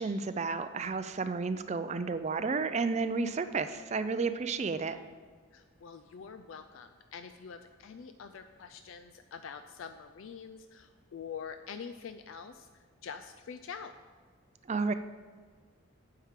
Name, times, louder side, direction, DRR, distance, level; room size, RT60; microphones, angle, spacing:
voice 1, 0.0-5.0 14.7-14.9, right 4 dB, 30° right, 11 dB, 0.4 m, -32 dB
voice 2, 5.5-13.9, left 6 dB, 70° left, 8 dB, 0.4 m, -45 dB
9.1 x 4.8 x 7.4 m, 1.5 s
head